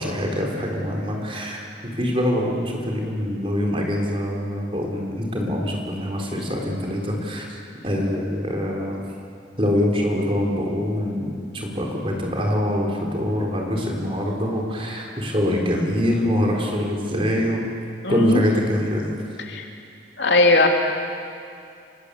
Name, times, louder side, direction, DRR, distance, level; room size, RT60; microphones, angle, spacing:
voice 1, 0.0-7.6 7.8-9.0 9.6-17.6 18.1-19.1, equal, 30° right, -1 dB, 4.2 m, -24 dB
voice 2, 18.0-18.4 19.5-19.6 20.2-20.7, left 2 dB, 70° left, 2 dB, 2.9 m, -18 dB
29.5 x 19.0 x 8.4 m, 2.5 s
head